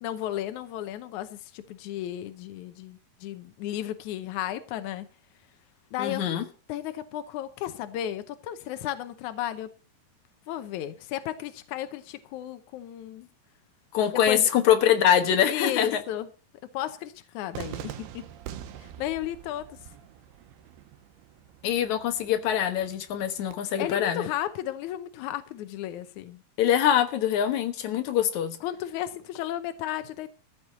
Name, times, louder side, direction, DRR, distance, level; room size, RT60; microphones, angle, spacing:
voice 1, 0.0-5.1 5.9-6.2 6.7-9.7 10.5-13.3 14.3-14.5 15.5-16.3 16.7-18.3 18.8-19.8 23.8-26.4 28.6-30.3, left 12 dB, 80° left, 1.7 m, -34 dB
voice 2, 6.0-6.4 13.9-16.0 21.6-24.3 26.6-28.6, left 9 dB, 60° left, 2.2 m, -24 dB
Cheering / Fireworks, 17.5-23.5, right 11 dB, 80° right, 2.9 m, -44 dB
14.5 x 6.1 x 8.0 m
omnidirectional pair, 4.6 m